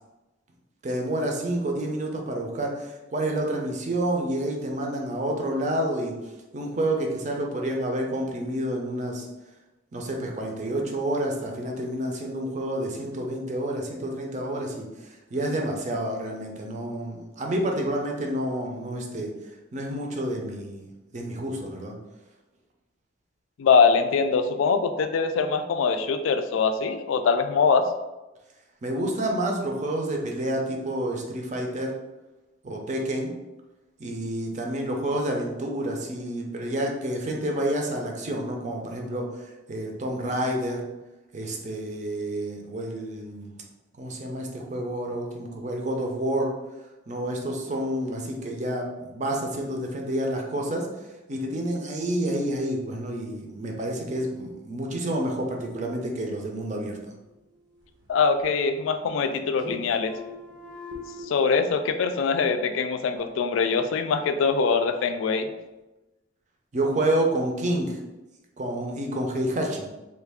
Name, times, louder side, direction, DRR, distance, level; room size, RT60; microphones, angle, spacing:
voice 1, 0.8-6.1 6.5-9.3 9.9-14.9 15.3-19.3 19.7-20.8 21.1-22.0 28.8-31.9 32.6-33.3 34.0-39.3 39.7-40.8 41.3-43.5 44.0-46.5 47.1-50.9 51.3-57.1 66.7-68.0 68.6-69.9, right 1 dB, 40° right, 1 dB, 0.5 m, -29 dB
voice 2, 23.6-27.9 58.1-60.1 61.2-65.5, left 5 dB, 90° left, 8 dB, 0.3 m, -23 dB
sound 1, 57.1-58.1 58.4-59.3 59.6-61.2, left 2 dB, 85° right, 0.9 m, -42 dB
3.2 x 2.3 x 3.4 m, 1.1 s
head